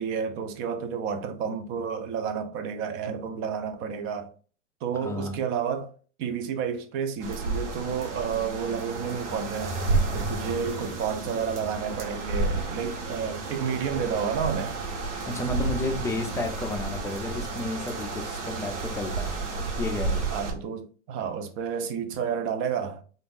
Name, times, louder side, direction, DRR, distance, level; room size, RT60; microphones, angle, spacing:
voice 1, 0.0-4.3 4.8-5.9 6.2-9.8 10.1-14.8 20.3-23.0, right 7 dB, 35° right, 0.6 m, -30 dB
voice 2, 4.9-5.4 15.3-19.5 19.8-20.3, left 2 dB, 10° left, 0.4 m, -32 dB
sound 1, 7.2-20.5, right 3 dB, 65° right, 1.2 m, -31 dB
3.4 x 2.6 x 2.5 m
hypercardioid pair, 105°, 38 cm